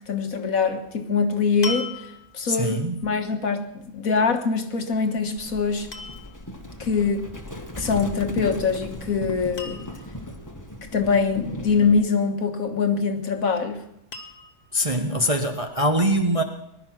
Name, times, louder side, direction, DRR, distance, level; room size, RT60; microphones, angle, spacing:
voice 1, 0.1-1.9 2.3-5.9 6.8-7.3 7.8-9.8 10.9-13.8, left 5 dB, 60° left, 1.7 m, -23 dB
sound 1, 0.7-0.9 1.6-2.5 4.9-5.3 5.9-6.4 8.4-8.8 9.1-9.2 9.6-10.2 12.5-13.1 14.1-14.7 15.5-15.6, left 4 dB, 35° left, 1.4 m, -37 dB
voice 2, 2.4-3.0 14.7-16.4, equal, 25° right, 0.9 m, -23 dB
Livestock farm animals working animals, 5.4-12.0, equal, 10° left, 1.4 m, -37 dB
20.0 x 12.0 x 6.1 m
omnidirectional pair, 1.7 m